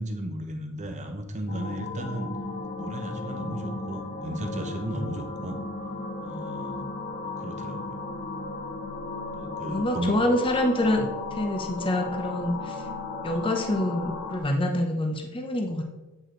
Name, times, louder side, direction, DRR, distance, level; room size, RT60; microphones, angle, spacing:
voice 1, 0.0-2.3 2.8-5.6 6.2-6.9 7.2-7.8 9.3-10.1, right 1 dB, 30° right, 5 dB, 0.9 m, -35 dB
sound 1, 1.5-14.4, left 3 dB, 45° left, 0.9 m, -35 dB
voice 2, 9.7-12.8 13.2-15.8, left 1 dB, 25° left, 4 dB, 0.7 m, -26 dB
8.4 x 4.9 x 3.8 m, 1.1 s
head